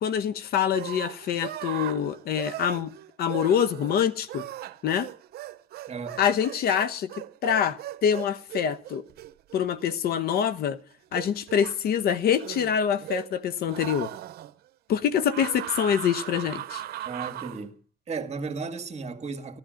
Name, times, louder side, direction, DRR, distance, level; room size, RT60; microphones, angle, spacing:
voice 1, 0.0-2.9 3.2-4.4 4.8-5.1 6.2-7.1 7.4-9.0 9.5-10.8 11.1-14.1 14.9-16.8, left 8 dB, 65° left, 1.1 m, -25 dB
sound 1, 0.7-10.7 11.1-11.8 12.3-13.4 13.7-14.5 15.3-17.6, right 13 dB, 70° right, 0.9 m, -38 dB
voice 2, 5.9-6.2 17.1-17.8 18.1-19.6, right 4 dB, 40° right, 2.0 m, -34 dB
15.0 x 12.0 x 6.4 m
cardioid pair, 110°, 17 cm